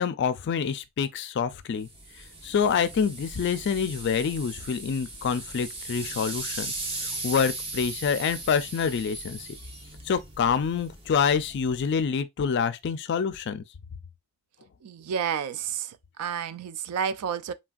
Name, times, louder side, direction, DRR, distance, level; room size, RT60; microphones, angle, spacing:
voice 1, 0.0-1.9 2.2-9.5 10.0-13.6, left 6 dB, 50° left, 0.3 m, -27 dB
sound 1, 1.8-12.1, right 2 dB, 25° right, 0.6 m, -38 dB
voice 2, 14.8-17.5, right 7 dB, 90° right, 0.3 m, -31 dB
3.2 x 2.5 x 2.3 m
head